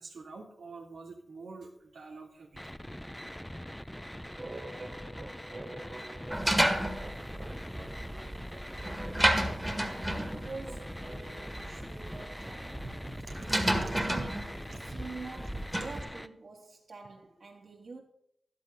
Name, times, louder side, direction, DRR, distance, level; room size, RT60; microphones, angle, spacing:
voice 1, 0.0-2.7 9.8-10.0 13.1-14.1 14.7-15.1, right 3 dB, 80° right, 3.0 m, -47 dB
sound 1, 2.5-16.3, equal, 5° left, 0.6 m, -43 dB
sound 2, 4.4-12.6, right 2 dB, 35° right, 1.4 m, -48 dB
sound 3, 6.3-16.0, right 1 dB, 10° right, 1.9 m, -32 dB
voice 2, 10.1-12.9 13.8-18.0, right 3 dB, 60° right, 3.2 m, -46 dB
12.5 x 12.0 x 3.9 m
wide cardioid pair, 105°, 0 cm